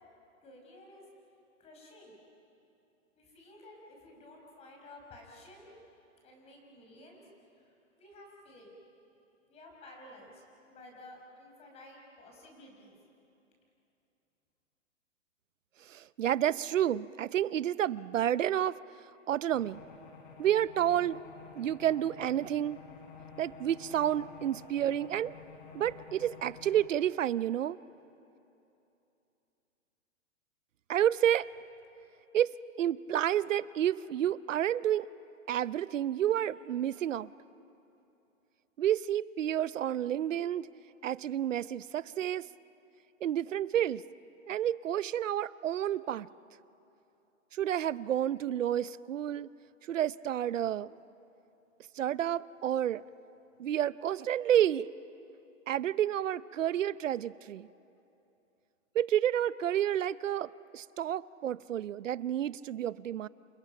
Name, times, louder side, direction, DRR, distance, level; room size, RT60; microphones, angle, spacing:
voice 1, 0.4-1.0 1.6-2.1 3.2-5.7 6.2-7.2 7.5-7.6 8.0-8.7 9.5-13.0, left 1 dB, 15° left, 0 dB, 5.3 m, -53 dB
voice 2, 15.9-18.8 19.3-19.8 20.4-21.2 21.6-22.8 23.4-25.3 25.7-27.8 30.9-31.5 32.3-32.5 32.8-35.1 35.5-37.3 38.8-40.7 41.0-42.5 43.2-44.0 44.5-46.3 47.5-49.5 49.9-50.9 52.0-53.0 53.6-54.9 55.7-57.7 58.9-63.3, right 11 dB, 70° right, 18 dB, 0.7 m, -30 dB
sound 1, 19.5-26.9, left 5 dB, 35° left, 3.8 m, -51 dB
30.0 x 28.5 x 5.8 m, 2.9 s
hypercardioid pair, 155°, 39 cm